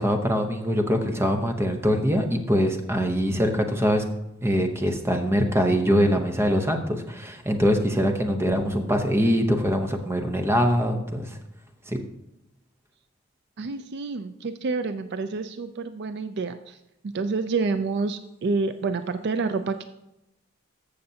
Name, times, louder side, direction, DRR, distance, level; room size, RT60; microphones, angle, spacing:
voice 1, 0.0-4.0 4.4-11.3 11.9-12.0, equal, 10° right, 4 dB, 0.8 m, -23 dB
voice 2, 13.6-16.8 17.1-19.8, right 4 dB, 50° right, 10 dB, 0.4 m, -28 dB
14.5 x 6.6 x 2.8 m, 0.88 s
head